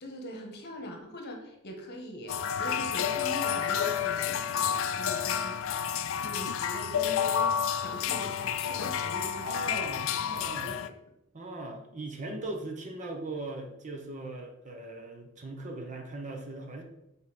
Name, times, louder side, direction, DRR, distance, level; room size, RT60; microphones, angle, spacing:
voice 1, 0.0-10.9, equal, 50° left, 3 dB, 1.3 m, -42 dB
sound 1, 2.3-10.9, left 8 dB, 65° left, 0.4 m, -30 dB
voice 2, 9.4-10.7 11.3-16.8, right 2 dB, 35° right, 3 dB, 0.9 m, -39 dB
5.3 x 4.8 x 5.1 m, 0.85 s
head